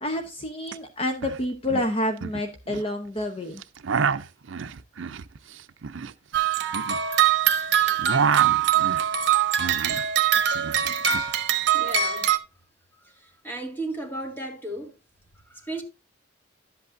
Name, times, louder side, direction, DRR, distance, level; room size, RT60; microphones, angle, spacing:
voice 1, 0.0-3.6, left 1 dB, 30° left, 0.8 m, -28 dB
sound 1, 0.7-1.4 1.7-2.9 3.6-7.5 7.8-10.1 10.3-11.3, right 6 dB, 75° right, 0.5 m, -29 dB
sound 2, 6.3-12.4, right 9 dB, 60° right, 1.1 m, -23 dB
voice 2, 11.7-12.3 13.0-15.0 15.5-15.8, right 2 dB, 10° left, 2.0 m, -35 dB
11.5 x 8.2 x 2.6 m
head